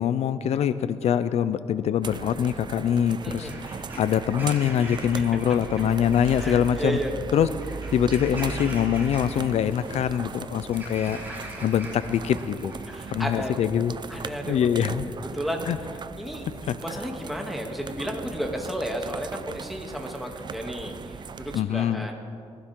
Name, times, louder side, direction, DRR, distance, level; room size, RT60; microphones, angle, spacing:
voice 1, 0.0-7.0 7.3-7.5 7.9-11.3 11.6-12.7 13.1-15.0 15.7-15.8 16.7-16.8 21.5-22.1, left 9 dB, 75° left, 13 dB, 0.5 m, -24 dB
sound 1, 2.0-21.6, right 5 dB, 40° right, 0.6 m, -38 dB
voice 2, 3.2-3.5 6.3-7.1 12.9-13.5 14.1-14.7 15.3-15.7 16.2-16.5 16.8-22.2, equal, ahead, 0 dB, 2.7 m, -32 dB
Bird vocalization bird call bird song / Crow, 3.3-13.2, right 1 dB, 20° right, 5.1 m, -43 dB
22.0 x 16.0 x 3.8 m, 2.3 s
cardioid pair, 85°, 11 cm